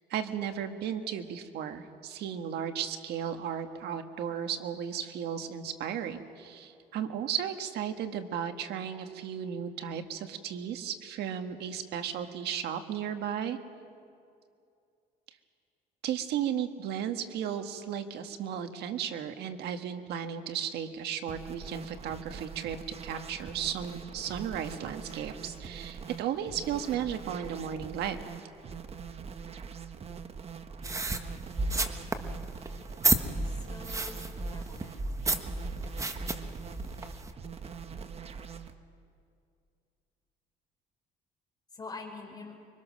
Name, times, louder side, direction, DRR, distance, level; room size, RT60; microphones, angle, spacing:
voice 1, 0.1-13.6 16.0-28.2, right 9 dB, 75° right, 7 dB, 1.6 m, -35 dB
sound 1, 21.3-38.7, right 6 dB, 35° right, 1.2 m, -43 dB
sound 2, 30.8-37.3, right 2 dB, 20° right, 1.3 m, -32 dB
voice 2, 33.4-34.2 34.5-35.0 41.7-42.5, left 3 dB, 25° left, 2 dB, 5.1 m, -44 dB
25.0 x 24.0 x 6.5 m, 2.4 s
cardioid pair, 110°, 17 cm